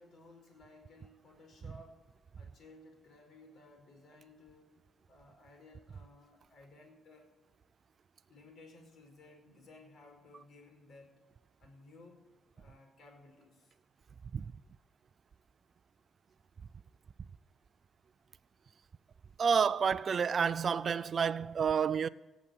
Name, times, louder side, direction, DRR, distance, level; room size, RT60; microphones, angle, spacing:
voice 1, 0.0-2.0 2.4-4.7 5.1-7.3 8.3-11.2 11.6-12.3 12.5-13.7, left 2 dB, 60° left, 5.0 m, -57 dB
voice 2, 19.4-22.1, right 6 dB, 45° right, 0.4 m, -29 dB
17.5 x 7.2 x 7.8 m
cardioid pair, 90°, 0 cm